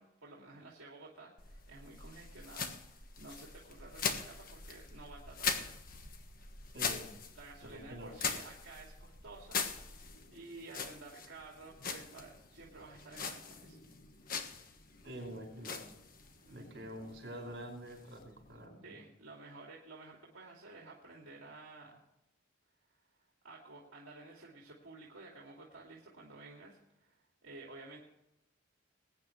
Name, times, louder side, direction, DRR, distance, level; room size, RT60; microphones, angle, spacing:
voice 1, 0.0-5.8 7.3-9.6 9.9-13.8 16.5-16.9 18.8-22.0 23.4-27.2 27.4-28.0, right 3 dB, 70° right, -2 dB, 2.6 m, -52 dB
sound 1, 1.4-18.7, left 5 dB, 45° left, 1.4 m, -42 dB
voice 2, 6.7-7.1 7.6-8.1 15.0-15.8 16.5-19.0, right 1 dB, 55° right, 2 dB, 5.4 m, -46 dB
21.0 x 9.7 x 3.2 m, 0.88 s
head